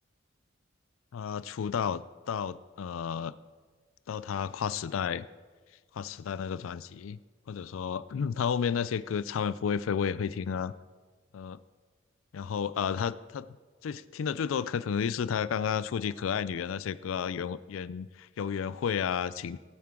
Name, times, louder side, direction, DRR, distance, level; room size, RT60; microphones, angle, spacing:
voice 1, 1.1-3.3 4.1-5.3 5.9-7.2 7.5-10.7 11.3-11.6 12.3-13.5 13.8-19.6, left 7 dB, 90° left, 17 dB, 0.4 m, -32 dB
17.5 x 9.4 x 3.7 m, 1.4 s
head